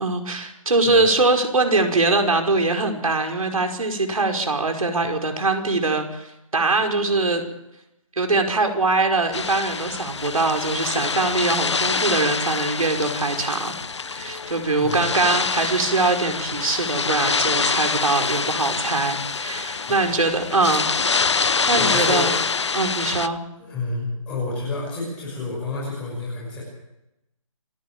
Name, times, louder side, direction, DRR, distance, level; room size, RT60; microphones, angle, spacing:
voice 1, 0.0-7.4 8.2-13.7 14.1-20.9 21.7-22.3 22.7-23.4, right 3 dB, 80° right, 4 dB, 5.2 m, -22 dB
sound 1, 9.3-23.3, left 5 dB, 55° left, 0.8 m, -25 dB
voice 2, 14.8-15.1 19.9-20.0 21.5-22.3 23.6-26.6, left 3 dB, 5° left, -5 dB, 6.0 m, -30 dB
28.0 x 11.0 x 9.0 m, 0.90 s
hypercardioid pair, 180°, 18 cm